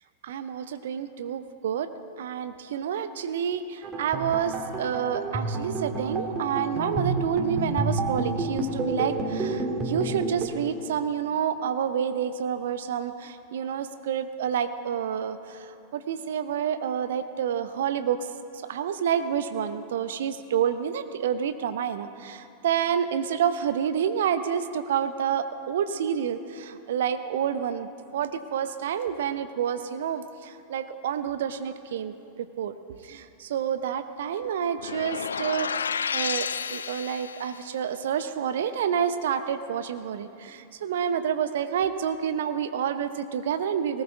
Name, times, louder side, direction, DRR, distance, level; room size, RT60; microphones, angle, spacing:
voice 1, 0.2-1.9 2.2-18.2 18.7-27.9 28.1-32.8 33.0-44.0, right 8 dB, 60° right, 10 dB, 0.8 m, -29 dB
sound 1, 3.8-10.5, right 2 dB, 20° right, 2.6 m, -29 dB
sound 2, 34.8-37.6, left 6 dB, 70° left, 0.3 m, -31 dB
19.5 x 18.5 x 3.5 m, 2.6 s
figure-of-eight pair, 90°, 0 cm